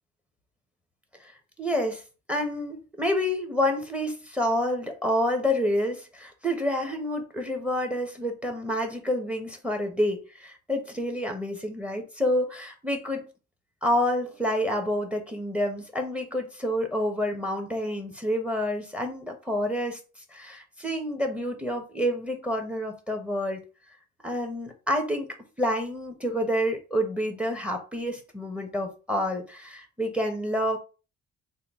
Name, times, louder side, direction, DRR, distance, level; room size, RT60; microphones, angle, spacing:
voice 1, 1.6-2.0 2.3-13.3 13.8-20.0 20.3-23.6 24.2-30.8, equal, 5° right, 0.9 m, -28 dB
3.7 x 2.2 x 3.5 m
cardioid pair, 90°, 30 cm